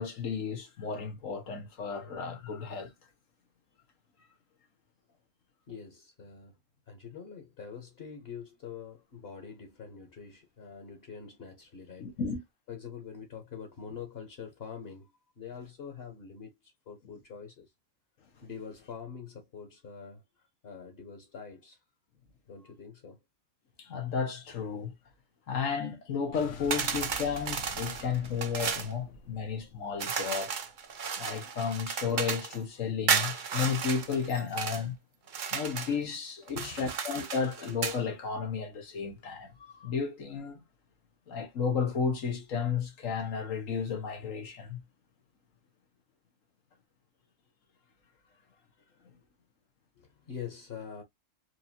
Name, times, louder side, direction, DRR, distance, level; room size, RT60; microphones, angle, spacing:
voice 1, 0.0-2.9 12.0-12.4 23.8-24.9 25.5-30.5 31.2-35.0 35.5-40.6 41.3-44.8, left 6 dB, 90° left, 1.5 m, -33 dB
voice 2, 5.7-6.6 6.9-12.1 12.7-15.1 15.4-17.7 18.4-20.2 20.6-21.8 22.5-23.2 26.6-26.8 27.9-28.2 36.5-36.9 50.0-51.0, left 6 dB, 55° left, 1.2 m, -45 dB
Explosion, 26.3-30.7, left 4 dB, 70° left, 1.1 m, -48 dB
sound 1, 26.7-28.9 30.0-32.6 33.1-34.8 35.3-36.0 36.5-38.0, right 6 dB, 50° right, 0.7 m, -33 dB
4.6 x 2.6 x 2.8 m
omnidirectional pair, 1.3 m